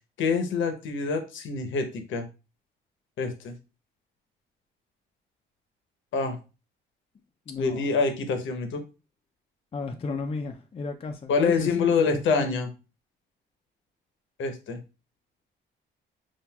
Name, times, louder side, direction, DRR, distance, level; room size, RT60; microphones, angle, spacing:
voice 1, 0.2-2.3 3.2-3.5 6.1-6.4 7.6-8.8 11.3-12.7 14.4-14.8, left 4 dB, 75° left, 0.8 m, -26 dB
voice 2, 7.5-7.8 9.7-12.6, left 4 dB, 30° left, 0.4 m, -33 dB
5.6 x 2.5 x 2.3 m
cardioid pair, 90°, 20 cm